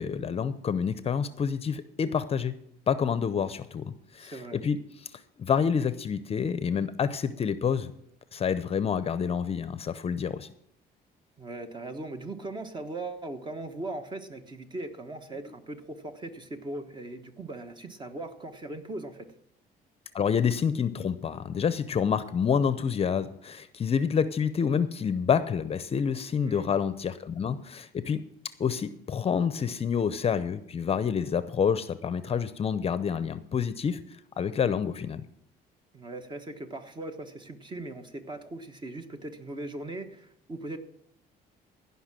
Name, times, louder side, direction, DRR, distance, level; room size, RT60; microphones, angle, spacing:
voice 1, 0.0-2.5 2.9-3.8 4.1-4.8 5.4-7.9 8.3-10.5 20.1-28.2 28.6-34.0 34.4-35.2, left 7 dB, 35° left, 13 dB, 0.7 m, -28 dB
voice 2, 4.2-4.6 11.4-19.3 26.4-26.7 35.9-40.8, right 2 dB, 25° right, 7 dB, 1.3 m, -39 dB
16.0 x 5.7 x 7.5 m, 0.72 s
cardioid pair, 110°, 17 cm